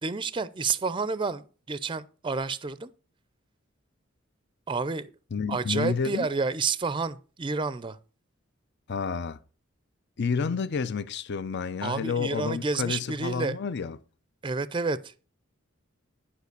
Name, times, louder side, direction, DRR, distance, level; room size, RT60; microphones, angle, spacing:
voice 1, 0.0-2.9 4.7-5.1 5.5-8.0 11.8-13.6 14.4-15.1, right 4 dB, 25° right, 0.5 m, -30 dB
voice 2, 5.3-6.3 8.9-9.4 10.2-14.0, left 5 dB, 55° left, 0.5 m, -30 dB
10.5 x 4.9 x 6.7 m
head